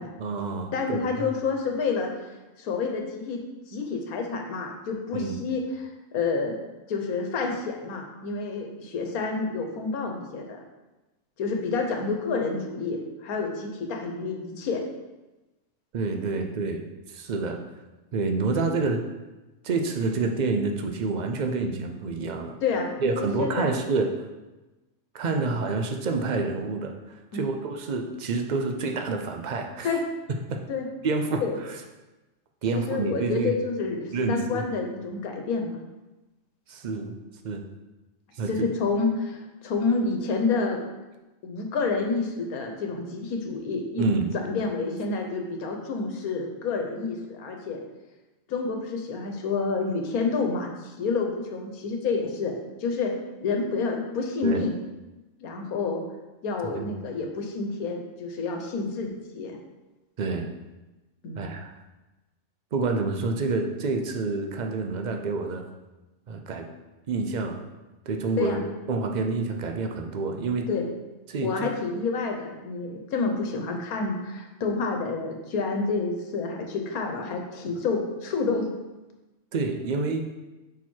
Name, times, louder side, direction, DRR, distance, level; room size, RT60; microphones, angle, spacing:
voice 1, 0.2-1.3 5.1-5.4 15.9-16.8 17.1-17.6 18.1-19.0 19.6-22.6 23.0-24.1 25.1-29.9 30.5-30.6 31.0-31.8 32.6-33.5 34.1-34.6 36.7-37.1 37.4-37.6 38.4-38.7 44.0-44.3 54.4-54.6 56.7-56.9 60.2-60.5 61.3-61.7 62.7-65.6 66.3-66.7 67.1-67.6 68.1-68.6 68.9-70.7 71.3-71.7 79.5-80.3, right 3 dB, 55° right, 4 dB, 0.5 m, -28 dB
voice 2, 0.7-2.1 2.6-3.4 3.7-5.9 6.1-6.5 6.9-10.6 11.4-14.8 22.6-23.7 27.3-27.5 29.8-30.0 30.7-30.9 31.4-31.6 32.7-35.8 38.5-40.8 41.4-44.0 44.4-47.8 48.5-52.5 52.8-53.1 53.4-54.7 55.4-56.0 56.4-59.6 61.2-61.4 68.4-68.6 70.7-70.9 71.4-78.7, left 4 dB, 85° left, 3 dB, 1.4 m, -29 dB
5.9 x 4.4 x 4.5 m, 1.1 s
omnidirectional pair, 1.5 m